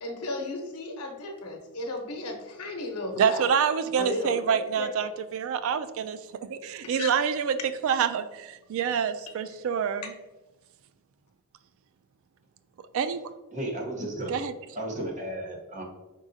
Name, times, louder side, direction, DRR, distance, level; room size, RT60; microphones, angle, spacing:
voice 1, 0.0-3.4 4.0-4.9 7.0-7.1, left 1 dB, 80° left, 3 dB, 0.9 m, -34 dB
voice 2, 3.2-7.6 7.8-10.1 12.9-13.3 14.3-14.5, right 7 dB, 65° right, 11 dB, 0.3 m, -27 dB
voice 3, 13.5-14.3 14.7-15.8, right 1 dB, 35° right, 0 dB, 0.9 m, -33 dB
4.9 x 3.7 x 2.6 m, 1.1 s
head